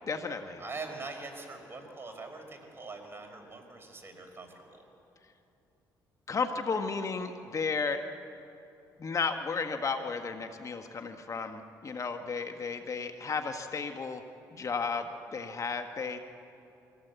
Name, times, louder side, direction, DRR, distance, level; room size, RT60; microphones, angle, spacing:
voice 1, 0.1-0.6 6.3-8.0 9.0-14.2 14.5-16.2, left 4 dB, 40° left, 6 dB, 1.2 m, -33 dB
voice 2, 0.6-4.8, right 3 dB, 30° right, 3 dB, 4.6 m, -43 dB
24.0 x 16.5 x 8.1 m, 2.8 s
supercardioid pair, 75°, 8 cm